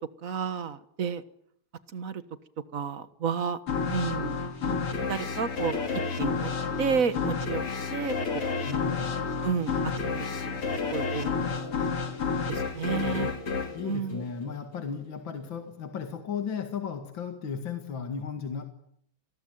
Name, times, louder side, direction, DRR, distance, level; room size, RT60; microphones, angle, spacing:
voice 1, 0.2-1.2 1.9-2.2 2.7-3.6 3.9-4.4 4.6-4.8 5.1-5.8 6.2-6.5 6.8-7.6 7.9-8.4 9.4-11.8 12.5-13.3 13.9-14.2, right 6 dB, 45° right, 13 dB, 1.5 m, -31 dB
sound 1, 3.7-14.9, left 5 dB, 90° left, 4.0 m, -30 dB
voice 2, 8.7-9.2 12.9-13.3 13.7-18.6, left 6 dB, 60° left, 6 dB, 2.7 m, -35 dB
28.0 x 20.0 x 9.3 m, 0.69 s
omnidirectional pair, 2.4 m